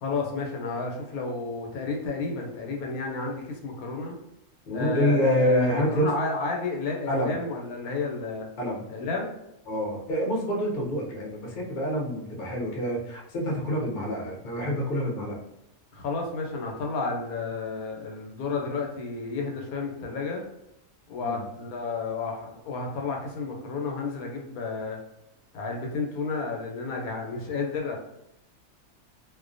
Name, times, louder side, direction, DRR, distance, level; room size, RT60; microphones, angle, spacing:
voice 1, 0.0-4.2 4.7-8.5 8.9-9.3 15.9-20.5 21.1-25.0 25.5-28.0, left 4 dB, 85° left, 1 dB, 1.1 m, -31 dB
voice 2, 4.7-6.1 7.1-7.3 8.6-8.8 9.7-15.4 21.2-21.4, equal, 50° left, -3 dB, 0.7 m, -27 dB
2.4 x 2.1 x 2.5 m, 0.84 s
omnidirectional pair, 1.5 m